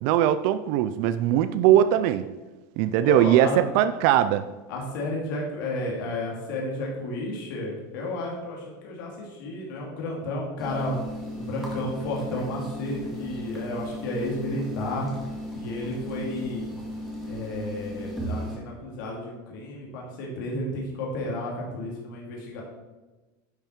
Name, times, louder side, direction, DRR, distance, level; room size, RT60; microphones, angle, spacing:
voice 1, 0.0-2.2 2.8-4.5, right 11 dB, 60° right, 12 dB, 0.5 m, -20 dB
voice 2, 3.0-3.6 4.7-11.0 11.3-15.1 15.5-16.7 17.3-22.6, left 1 dB, 75° left, -2 dB, 2.5 m, -32 dB
sound 1, 10.6-18.6, equal, ahead, 2.2 m, -36 dB
10.5 x 5.6 x 4.6 m, 1.2 s
supercardioid pair, 145°, 11 cm